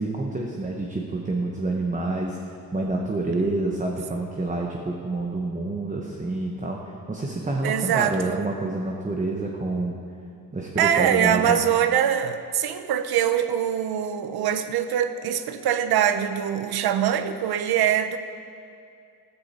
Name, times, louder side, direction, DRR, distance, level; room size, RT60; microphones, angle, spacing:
voice 1, 0.0-6.8 7.1-9.9 10.5-11.6, right 2 dB, 20° right, 0 dB, 1.1 m, -28 dB
voice 2, 7.6-8.4 10.8-18.2, right 9 dB, 70° right, 10 dB, 0.9 m, -23 dB
15.0 x 14.5 x 4.3 m, 2.4 s
cardioid pair, 135°, 39 cm